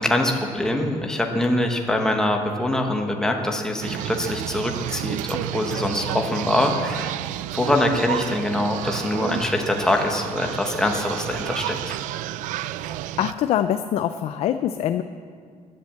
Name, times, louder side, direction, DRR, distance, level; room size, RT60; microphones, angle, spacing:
voice 1, 0.0-7.2 7.5-12.0, left 1 dB, 5° left, 2 dB, 1.2 m, -24 dB
sound 1, 3.8-13.3, right 14 dB, 75° right, 0.4 m, -31 dB
voice 2, 12.7-15.0, left 10 dB, 50° left, 10 dB, 0.5 m, -24 dB
16.0 x 10.5 x 7.5 m, 2.1 s
cardioid pair, 170°, 13 cm